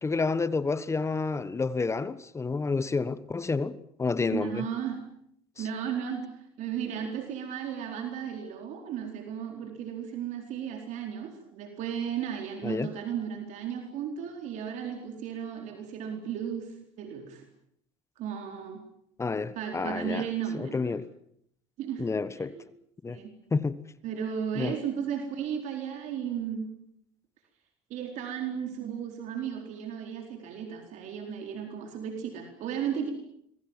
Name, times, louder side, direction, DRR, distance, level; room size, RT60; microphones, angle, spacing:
voice 1, 0.0-4.7 5.6-5.7 12.6-12.9 19.2-20.3 20.5-21.1 22.0-22.6 23.0-23.2 23.5-23.8 24.5-24.8, left 4 dB, 20° left, 1.2 m, -29 dB
voice 2, 4.3-5.0 5.6-17.5 18.2-18.8 19.6-20.9 21.8-22.1 22.4-22.6 23.1-23.3 24.0-26.7 27.9-33.1, right 8 dB, 65° right, 4.3 m, -35 dB
26.5 x 21.5 x 7.4 m
supercardioid pair, 95°, 14 cm